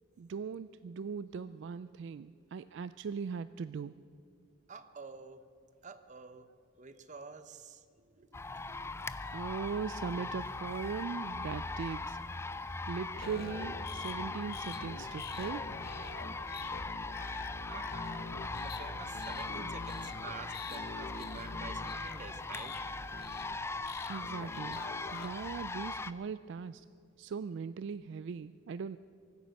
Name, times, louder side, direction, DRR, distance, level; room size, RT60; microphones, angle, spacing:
voice 1, 0.2-3.9 9.3-12.2 12.9-15.6 24.1-24.8 25.1-26.9 27.2-29.0, right 5 dB, 60° right, 15 dB, 0.3 m, -39 dB
voice 2, 4.7-5.5 5.8-6.5 6.8-7.8 8.2-8.9 17.7-22.8 23.2-23.4, right 4 dB, 35° right, 12 dB, 0.8 m, -49 dB
sound 1, 8.3-26.1, left 3 dB, 15° left, 0.4 m, -40 dB
sound 2, 13.1-25.3, left 3 dB, 50° left, 1.0 m, -46 dB
23.5 x 9.4 x 6.5 m, 2.5 s
head